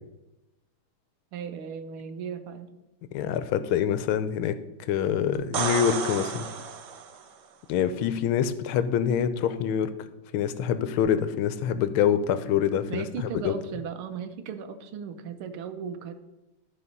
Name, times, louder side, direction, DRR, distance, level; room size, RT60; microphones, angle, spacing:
voice 1, 1.3-2.7 12.9-16.1, right 7 dB, 85° right, 9 dB, 1.7 m, -36 dB
voice 2, 3.1-4.6 4.9-6.5 7.7-9.9 10.3-13.5, left 9 dB, 85° left, 12 dB, 1.5 m, -25 dB
sound 1, 5.3-7.3 11.0-11.1, right 6 dB, 65° right, 1.3 m, -31 dB
12.0 x 4.1 x 5.3 m, 0.96 s
omnidirectional pair, 2.3 m